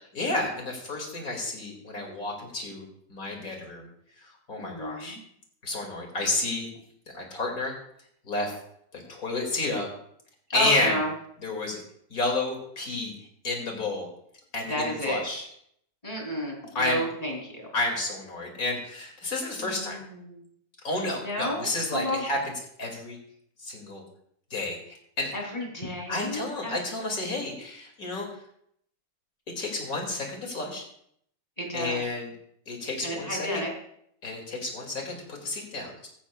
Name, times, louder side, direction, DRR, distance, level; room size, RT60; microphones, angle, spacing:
voice 1, 0.1-3.9 4.2-5.2 5.6-6.7 7.1-7.7 8.2-8.5 8.9-9.9 10.5-11.0 11.4-11.8 12.1-13.1 13.4-14.1 14.5-15.4 16.7-17.0 17.7-20.0 20.8-22.4 22.8-23.2 23.6-24.0 24.5-25.3 26.1-28.4 29.6-30.8 31.7-32.3 32.7-33.6 34.2-36.1, left 2 dB, 30° left, 1 dB, 2.4 m, -31 dB
voice 2, 4.6-5.2 9.0-9.1 10.5-11.1 14.7-15.2 16.0-17.7 19.5-20.4 21.1-22.2 25.3-26.8 31.6-32.0 33.0-33.7, equal, 10° left, -1 dB, 2.8 m, -32 dB
15.0 x 14.5 x 2.4 m, 0.70 s
omnidirectional pair, 3.9 m